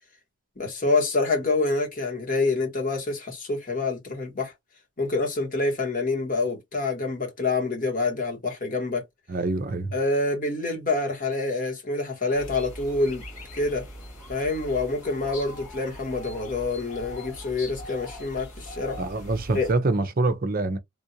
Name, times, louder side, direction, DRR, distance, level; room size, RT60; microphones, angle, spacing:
voice 1, 0.6-4.5 5.0-9.0 9.9-13.2 13.5-13.8 14.3-19.0 19.5-19.7, left 3 dB, 40° left, 1.4 m, -27 dB
voice 2, 9.3-9.9 19.0-20.8, right 2 dB, 40° right, 0.5 m, -25 dB
sound 1, 12.3-19.7, left 1 dB, 85° left, 2.1 m, -41 dB
3.6 x 2.4 x 2.7 m
head